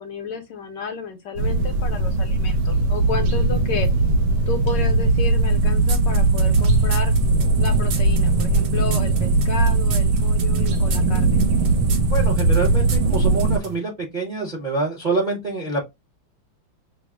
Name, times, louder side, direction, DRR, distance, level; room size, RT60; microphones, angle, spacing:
voice 1, 0.0-3.9 4.5-7.1 7.6-11.4, left 5 dB, 75° left, 1.1 m, -32 dB
sound 1, 1.4-13.6, right 3 dB, 85° right, 1.5 m, -19 dB
sound 2, 5.9-13.8, right 7 dB, 65° right, 1.1 m, -33 dB
voice 2, 12.0-15.8, right 3 dB, 40° right, 0.6 m, -26 dB
6.0 x 2.0 x 2.3 m
omnidirectional pair, 2.2 m